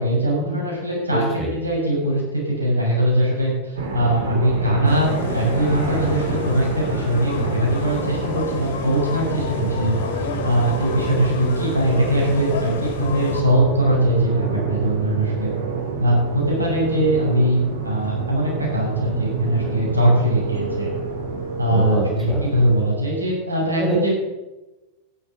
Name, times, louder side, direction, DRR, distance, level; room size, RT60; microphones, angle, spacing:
voice 1, 0.0-1.2 1.6-9.9 10.4-15.5 16.0-20.9 21.6-22.0 22.4-24.1, right 1 dB, 80° right, -3 dB, 6.7 m, -21 dB
voice 2, 1.1-1.5 21.7-22.6 23.8-24.0, right 2 dB, 10° right, -3 dB, 6.2 m, -25 dB
sound 1, 3.8-22.9, right 5 dB, 60° right, 3.9 m, -28 dB
sound 2, 4.8-13.4, left 5 dB, 55° left, 2.5 m, -32 dB
12.0 x 11.0 x 8.0 m, 1.1 s
figure-of-eight pair, 90°, 0 cm